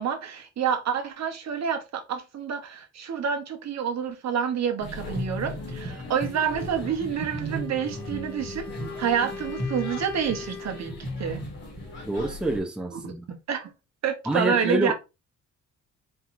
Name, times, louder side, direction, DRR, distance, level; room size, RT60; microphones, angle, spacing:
voice 1, 0.0-8.7 9.0-10.9 11.2-11.4 12.9-13.7 14.0-14.9, right 7 dB, 55° right, 1.0 m, -28 dB
sound 1, 4.8-12.6, equal, 50° left, 2.2 m, -36 dB
Wind instrument woodwind instrument, 7.5-11.0, left 6 dB, 15° left, 1.4 m, -40 dB
voice 2, 12.0-13.2 14.2-14.9, right 1 dB, 5° right, 0.7 m, -27 dB
4.5 x 3.6 x 2.5 m
cardioid pair, 120°, 33 cm